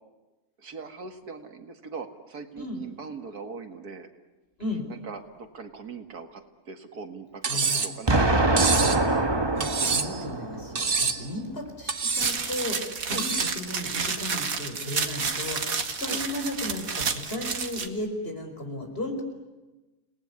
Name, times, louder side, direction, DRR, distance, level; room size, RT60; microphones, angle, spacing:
voice 1, 0.6-4.1 4.9-8.6 13.1-13.3 16.0-16.2, right 5 dB, 80° right, 6 dB, 2.4 m, -40 dB
Cutlery silverware, 7.4-8.0 8.6-9.0 9.6-10.2 10.8-11.3 11.9-12.4 13.2-13.6, right 5 dB, 40° right, 1.4 m, -26 dB
voice 2, 7.5-7.8 9.5-19.2, left 1 dB, 40° left, 3 dB, 5.0 m, -35 dB
Explosion, 8.1-11.0, right 2 dB, 20° right, 1.2 m, -24 dB
sound 1, 12.2-17.9, right 5 dB, 65° right, 2.1 m, -30 dB
30.0 x 19.0 x 9.7 m, 1.1 s
omnidirectional pair, 1.6 m